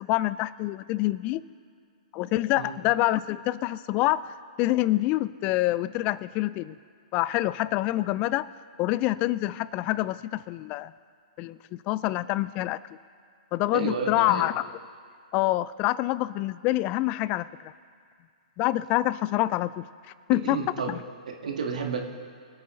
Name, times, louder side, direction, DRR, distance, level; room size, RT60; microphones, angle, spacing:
voice 1, 0.0-1.4 2.1-6.8 7.1-8.5 8.8-10.9 11.4-12.8 13.5-14.7 15.3-17.5 18.6-19.8 20.3-20.6 20.9-21.0, left 16 dB, 35° left, 18 dB, 0.3 m, -26 dB
voice 2, 13.7-14.5 20.4-21.0 21.3-22.0, right 5 dB, 75° right, 2 dB, 1.9 m, -31 dB
24.0 x 8.4 x 3.9 m, 2.2 s
hypercardioid pair, 120°, 4 cm